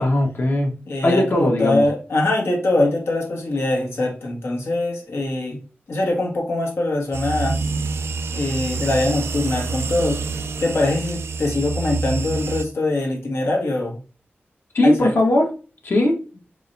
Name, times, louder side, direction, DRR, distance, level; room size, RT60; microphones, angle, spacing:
voice 1, 0.0-0.7 1.0-1.8 14.7-15.5 15.8-16.1, left 1 dB, 55° left, 0 dB, 1.4 m, -18 dB
voice 2, 0.9-5.6 5.9-7.6 8.3-10.2 10.6-14.0 14.8-15.1, left 2 dB, 75° left, -1 dB, 1.4 m, -23 dB
sound 1, 7.1-12.6, right 4 dB, 85° right, 0.4 m, -27 dB
4.6 x 3.3 x 2.7 m, 0.36 s
wide cardioid pair, 85°, 4 cm